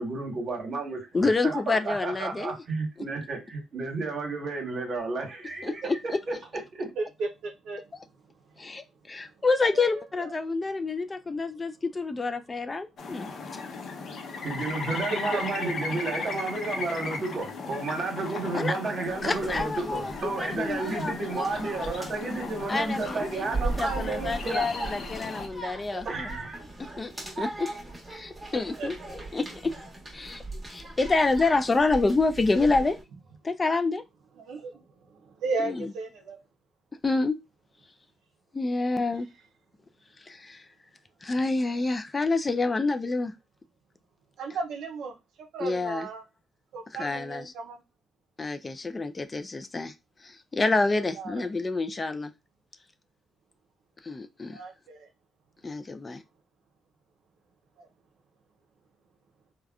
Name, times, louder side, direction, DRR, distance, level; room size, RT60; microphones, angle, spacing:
voice 1, 0.0-6.0 6.3-6.4 6.7-6.9 14.4-24.7 25.9-26.6, right 3 dB, 50° right, 1.2 m, -32 dB
voice 2, 1.1-2.6 5.6-6.0 7.9-8.0 8.6-13.3 18.5-18.8 19.2-21.5 22.7-26.4 27.0-27.1 27.4-27.7 28.1-29.0 29.3-29.7 30.1-30.4 30.7-33.0 33.4-34.0 35.6-35.9 37.0-37.4 38.5-39.3 40.2-40.6 41.2-43.3 45.6-46.1 46.9-47.5 48.4-49.9 50.2-52.3 54.0-54.6 55.6-56.2, left 3 dB, 25° left, 0.3 m, -28 dB
voice 3, 7.0-7.8 9.6-9.9 10.2-10.4 15.3-15.7 28.8-29.2 34.4-34.8 35.1-36.4 44.4-45.1 45.5-46.2 46.7-47.8 50.9-51.5 54.5-55.1 57.8-57.9, right 3 dB, 75° right, 0.5 m, -35 dB
sound 1, 13.0-25.5, left 4 dB, 60° left, 0.6 m, -36 dB
sound 2, 19.1-33.0, right 2 dB, 15° right, 1.2 m, -39 dB
3.4 x 2.2 x 2.3 m
cardioid pair, 90°, 0 cm